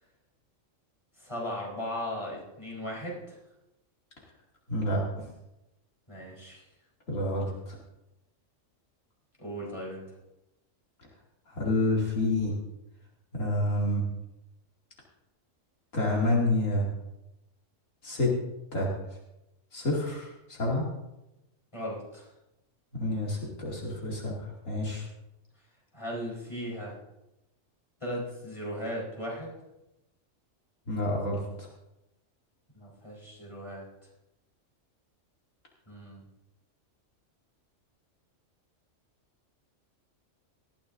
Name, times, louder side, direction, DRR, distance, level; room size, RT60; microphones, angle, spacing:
voice 1, 1.2-3.4 6.1-6.7 9.4-10.0 21.7-22.3 25.9-27.0 28.0-29.5 32.7-33.9 35.9-36.2, equal, 25° left, -4 dB, 4.2 m, -37 dB
voice 2, 4.7-5.3 7.1-7.8 11.5-12.5 13.3-14.0 15.9-16.9 18.0-18.3 18.7-18.9 19.7-20.9 22.9-25.1 30.9-31.7, left 1 dB, 80° left, -3 dB, 2.8 m, -28 dB
19.0 x 13.5 x 2.6 m, 0.93 s
omnidirectional pair, 1.3 m